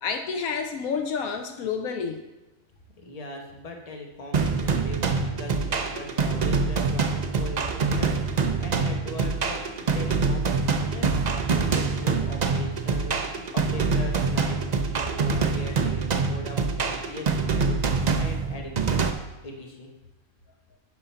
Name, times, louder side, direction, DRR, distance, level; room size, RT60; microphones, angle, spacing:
voice 1, 0.0-2.2, left 5 dB, 75° left, 7 dB, 1.1 m, -29 dB
voice 2, 3.0-19.9, left 2 dB, 30° left, 2 dB, 1.2 m, -40 dB
sound 1, 4.3-19.1, right 4 dB, 50° right, 0.5 m, -25 dB
10.5 x 3.9 x 5.7 m, 1.1 s
omnidirectional pair, 1.5 m